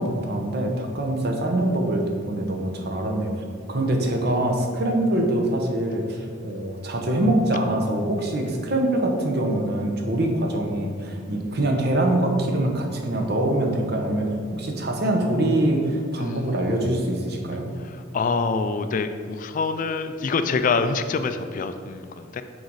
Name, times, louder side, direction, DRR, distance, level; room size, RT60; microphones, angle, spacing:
voice 1, 0.0-17.7, right 1 dB, 55° right, 2 dB, 0.9 m, -24 dB
voice 2, 16.1-16.8 17.8-22.4, left 4 dB, 45° left, 10 dB, 0.3 m, -26 dB
6.4 x 4.0 x 4.7 m, 2.1 s
head